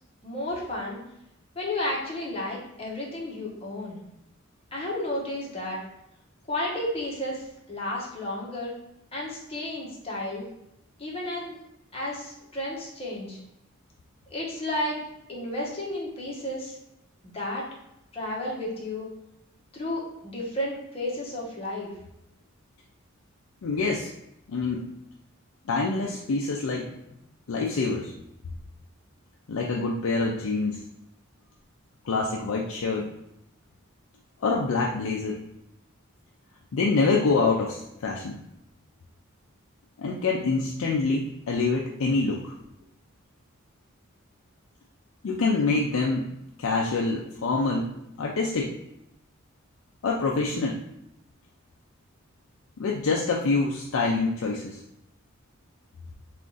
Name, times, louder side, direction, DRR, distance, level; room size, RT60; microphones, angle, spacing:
voice 1, 0.2-1.0 1.5-4.0 4.7-5.8 6.5-8.7 9.1-10.4 11.0-11.6 11.9-13.4 14.3-15.0 15.3-16.8 17.2-17.7 18.1-19.1 19.7-21.9, left 1 dB, 30° left, -4 dB, 1.1 m, -32 dB
voice 2, 23.6-24.1 24.5-24.9 25.7-26.9 27.5-28.1 29.5-30.8 32.0-33.1 34.4-35.4 36.7-38.3 40.0-42.5 45.2-46.3 46.6-47.9 48.2-48.8 50.0-50.8 52.8-54.8, left 3 dB, 70° left, -1 dB, 0.4 m, -26 dB
3.6 x 2.5 x 3.8 m, 0.84 s
head